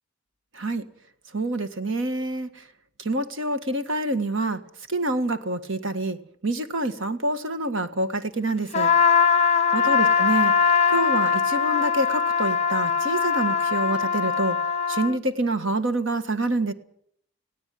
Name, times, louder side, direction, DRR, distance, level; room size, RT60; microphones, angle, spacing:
voice 1, 1.3-2.6 3.0-4.6 4.9-8.9 9.7-10.5 10.9-14.6 14.9-16.7, right 2 dB, 60° right, 10 dB, 1.7 m, -27 dB
Trumpet, 8.7-15.2, left 6 dB, 30° left, 0.9 m, -21 dB
19.0 x 17.0 x 9.4 m, 0.68 s
head